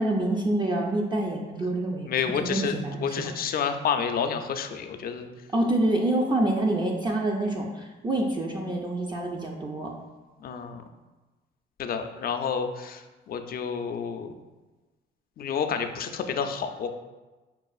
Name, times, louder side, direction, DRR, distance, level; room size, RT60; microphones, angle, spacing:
voice 1, 0.0-2.1 2.4-3.3 5.5-9.9, right 1 dB, 25° right, 0 dB, 0.4 m, -27 dB
voice 2, 2.1-5.3 10.4-10.8 11.8-14.3 15.4-16.9, left 6 dB, 50° left, 7 dB, 0.4 m, -29 dB
5.3 x 2.4 x 2.3 m, 1.2 s
cardioid pair, 90°, 20 cm